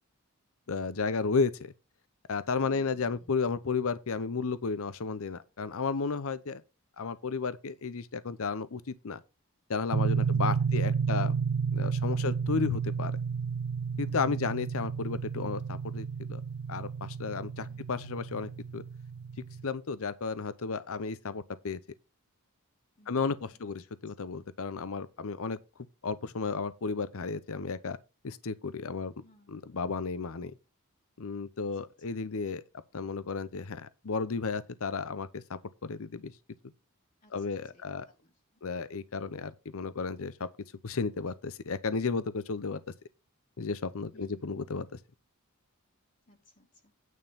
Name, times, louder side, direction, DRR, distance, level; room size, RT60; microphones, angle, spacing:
voice 1, 0.7-1.7 2.3-6.6 7.0-9.2 9.7-11.3 11.7-13.1 14.0-16.4 16.7-18.8 19.6-21.8 23.1-25.6 26.0-28.0 28.2-30.5 31.2-32.6 32.9-36.3 37.3-38.1 38.6-40.5 40.8-42.8 43.6-44.9, left 4 dB, 65° left, 0.7 m, -33 dB
voice 2, 2.6-3.4 10.2-10.3 10.6-10.8 12.7-12.8 17.7-17.8 23.0-23.6 29.2-29.5 31.6-31.7 32.1-32.2 37.2-38.6 44.1-44.4 46.3-47.0, equal, 35° left, 1.8 m, -62 dB
sound 1, 9.9-19.7, right 6 dB, 80° right, 0.5 m, -31 dB
9.4 x 5.4 x 5.6 m
head